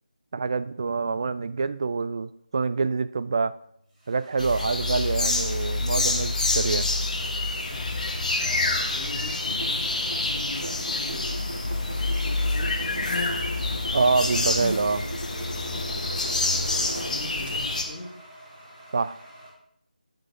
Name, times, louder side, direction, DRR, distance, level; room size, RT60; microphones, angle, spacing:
voice 1, 0.3-3.5 4.1-6.9 13.9-15.0 18.9-19.2, right 4 dB, 30° right, 15 dB, 0.3 m, -26 dB
sound 1, 3.4-19.5, right 1 dB, 15° right, 2.3 m, -49 dB
sound 2, 4.4-17.8, left 2 dB, 50° left, 1.7 m, -27 dB
voice 2, 8.4-11.4 12.2-13.0 16.6-18.1, left 1 dB, 15° left, -7 dB, 2.2 m, -41 dB
sound 3, 9.4-17.5, right 2 dB, 75° right, 2.5 m, -39 dB
10.0 x 7.8 x 3.6 m, 0.71 s
figure-of-eight pair, 170°, 5 cm